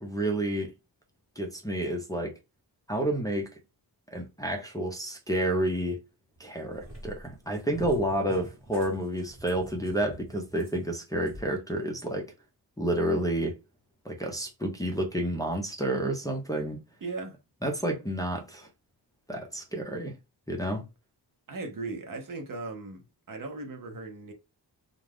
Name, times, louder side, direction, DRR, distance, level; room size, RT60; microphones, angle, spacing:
voice 1, 0.0-0.7 1.4-2.3 2.9-3.5 4.1-6.0 6.4-12.3 12.8-13.5 14.0-16.8 17.6-18.7 19.3-20.2 20.5-20.8, right 1 dB, 10° left, 0.5 m, -30 dB
Cat, 6.4-11.5, right 1 dB, 30° right, 1.3 m, -46 dB
voice 2, 17.0-17.4 21.5-23.0 23.3-24.3, right 3 dB, 55° right, 0.8 m, -37 dB
2.5 x 2.3 x 3.3 m
wide cardioid pair, 140°, 41 cm